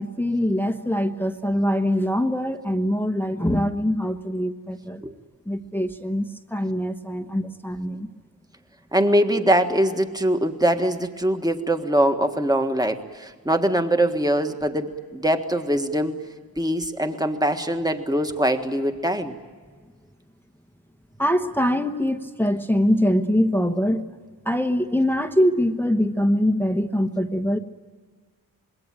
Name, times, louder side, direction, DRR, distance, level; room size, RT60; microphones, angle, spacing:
voice 1, 0.0-5.0 5.5-8.1 21.2-24.0 24.4-27.6, equal, 5° left, 5 dB, 1.1 m, -23 dB
voice 2, 8.9-16.1 16.6-19.3, right 1 dB, 10° right, 6 dB, 1.6 m, -22 dB
26.5 x 21.5 x 9.1 m, 1.5 s
wide cardioid pair, 140°, 37 cm